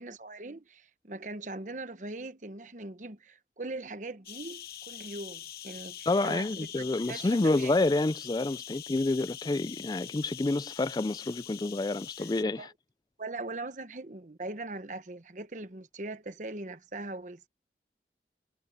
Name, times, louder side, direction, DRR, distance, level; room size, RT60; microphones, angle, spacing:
voice 1, 0.0-7.7 12.2-12.3 12.6-12.7 13.2-17.5, right 2 dB, 45° right, 1.0 m, -41 dB
sound 1, 4.2-12.4, left 11 dB, 55° left, 1.3 m, -44 dB
voice 2, 6.1-12.7, left 2 dB, 20° left, 0.4 m, -28 dB
head